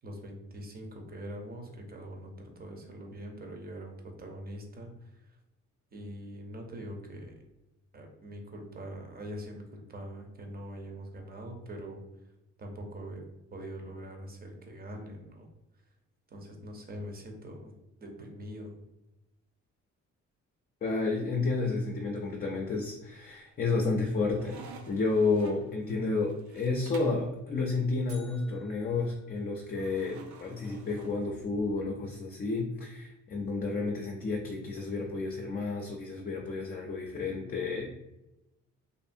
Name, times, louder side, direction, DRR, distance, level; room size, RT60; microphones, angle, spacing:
voice 1, 0.0-5.4 5.9-7.4 7.9-12.0 12.6-13.2 13.5-15.5 16.3-17.7 18.0-18.7, equal, 30° right, 2 dB, 0.7 m, -43 dB
voice 2, 20.8-24.6 24.9-37.9, left 3 dB, 30° left, 0 dB, 0.4 m, -31 dB
sound 1, 22.6-23.2 23.6-27.3 29.7-31.8, right 4 dB, 70° right, 0.5 m, -51 dB
sound 2, 28.1-30.2, right 1 dB, 90° right, 1.1 m, -57 dB
2.6 x 2.4 x 2.6 m, 0.94 s
cardioid pair, 90°, 30 cm